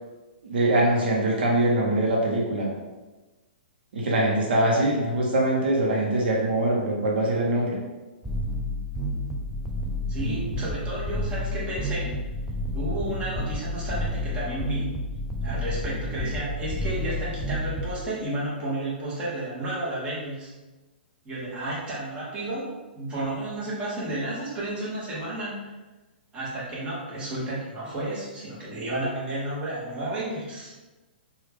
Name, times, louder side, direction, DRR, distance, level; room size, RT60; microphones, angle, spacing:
voice 1, 0.4-2.7 3.9-7.8 10.3-10.4, right 1 dB, 70° right, -2 dB, 0.8 m, -23 dB
sound 1, 8.2-17.9, left 1 dB, 5° right, 0.3 m, -30 dB
voice 2, 10.1-12.1 12.7-15.0 15.4-20.5 21.2-25.7 26.3-30.7, right 1 dB, 20° right, -7 dB, 1.0 m, -32 dB
3.1 x 2.3 x 3.4 m, 1.2 s
hypercardioid pair, 145°, 6 cm